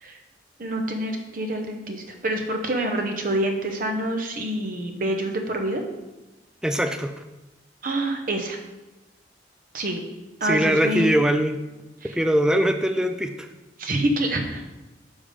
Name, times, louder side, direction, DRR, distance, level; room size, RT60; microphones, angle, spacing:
voice 1, 0.6-5.8 7.8-8.6 9.7-10.0 10.4-11.2 12.0-12.2 13.8-14.7, right 1 dB, 50° right, 4 dB, 0.8 m, -26 dB
voice 2, 6.6-7.1 10.5-11.6 12.2-13.3, equal, 5° right, 7 dB, 0.3 m, -21 dB
7.0 x 3.6 x 5.0 m, 1.0 s
head